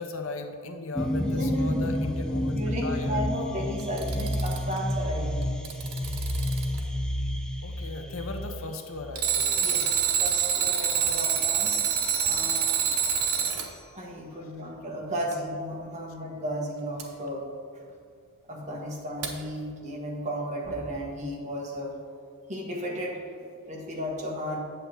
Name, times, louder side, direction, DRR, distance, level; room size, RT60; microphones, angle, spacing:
voice 1, 0.0-3.2 7.6-9.9 13.4-13.6, left 2 dB, 65° left, 5 dB, 0.7 m, -37 dB
sound 1, 1.0-9.5, left 1 dB, 5° left, 0.5 m, -30 dB
voice 2, 1.1-1.9 2.5-5.8 9.6-12.8 13.2-13.3 13.9-17.4 18.5-21.9 22.5-23.2 23.7-24.6, equal, 35° right, -2 dB, 1.4 m, -34 dB
Alarm, 3.8-4.8 5.4-6.8 9.1-13.7 17.0-17.1 19.2-19.3, right 8 dB, 85° right, 1.0 m, -26 dB
8.4 x 7.5 x 3.5 m, 2.3 s
head